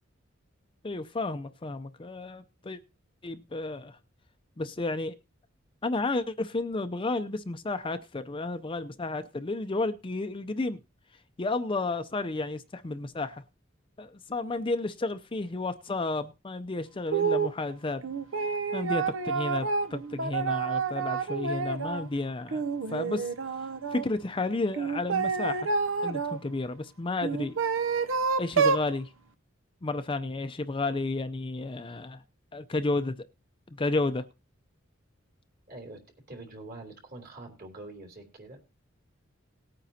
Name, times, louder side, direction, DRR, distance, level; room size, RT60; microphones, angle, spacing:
voice 1, 0.8-2.8 3.2-4.0 4.6-5.2 5.8-10.8 11.4-13.4 14.0-18.0 18.7-22.6 22.9-23.3 23.9-25.7 26.0-27.6 28.4-29.1 29.8-32.2 32.5-33.3 33.7-34.3, left 2 dB, 25° left, 0.5 m, -32 dB
sound 1, 17.1-17.5 18.0-22.1 22.5-24.0 24.7-26.4 27.2-28.9, right 5 dB, 80° right, 0.7 m, -29 dB
voice 2, 35.7-38.6, right 2 dB, 50° right, 3.3 m, -45 dB
19.0 x 9.1 x 2.8 m
head